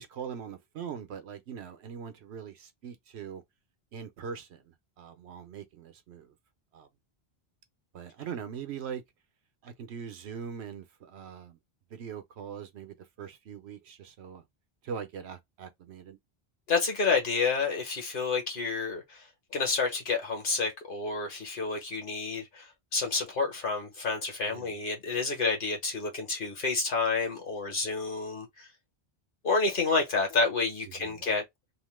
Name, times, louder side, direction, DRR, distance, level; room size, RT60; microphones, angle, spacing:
voice 1, 0.0-3.4 3.9-6.3 6.7-6.9 7.9-9.0 9.6-11.6 11.9-14.4 14.8-16.2 24.4-24.7 30.9-31.3, right 7 dB, 85° right, 1.0 m, -41 dB
voice 2, 16.7-19.2 19.5-28.7 29.4-31.4, left 4 dB, 55° left, 1.3 m, -29 dB
2.9 x 2.1 x 3.1 m
omnidirectional pair, 1.1 m